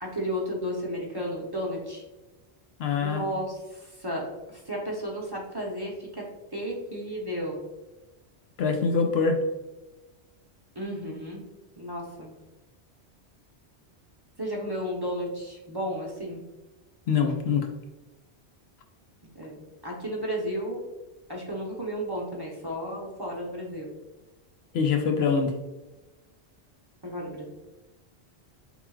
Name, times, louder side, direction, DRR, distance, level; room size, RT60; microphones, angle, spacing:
voice 1, 0.0-2.0 3.0-7.6 10.8-11.4 11.8-12.3 14.4-16.4 19.3-20.8 21.3-23.9 27.0-27.5, equal, 25° right, -3 dB, 0.7 m, -33 dB
voice 2, 2.8-3.2 8.6-9.4 17.1-17.7 24.7-25.5, left 5 dB, 70° left, 4 dB, 0.8 m, -24 dB
4.4 x 3.7 x 2.3 m, 1.1 s
omnidirectional pair, 1.1 m